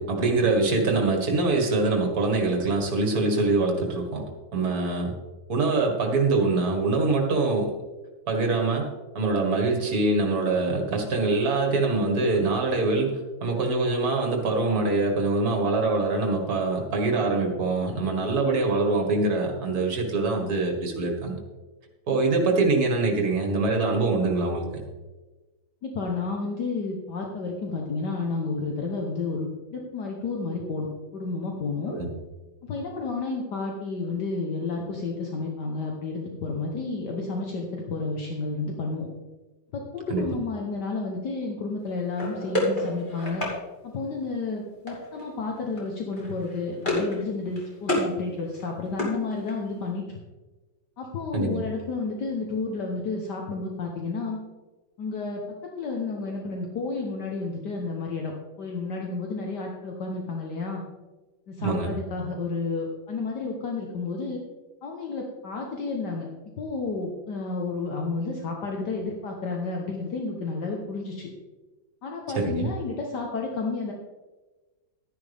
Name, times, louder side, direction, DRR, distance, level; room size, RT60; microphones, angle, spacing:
voice 1, 0.0-4.2 4.5-5.1 5.5-7.7 8.3-8.9 9.2-21.4 22.1-24.7 31.9-32.1 40.1-40.2 51.3-51.6 61.6-61.9 72.4-72.7, right 3 dB, 50° right, 1 dB, 2.3 m, -24 dB
voice 2, 25.8-30.9 31.1-31.9 32.6-39.1 39.7-43.5 43.9-50.2 51.0-54.4 55.0-55.4 55.8-58.3 58.6-60.8 61.5-64.4 64.8-66.3 66.6-71.3 72.0-73.9, left 3 dB, 65° left, 0 dB, 1.7 m, -31 dB
sound 1, 42.2-43.6 44.9-45.3 45.6-45.8 46.1-47.2 47.5-48.1 48.5-49.7, left 1 dB, 25° left, 2.6 m, -29 dB
12.0 x 10.5 x 3.5 m, 1.2 s
omnidirectional pair, 2.1 m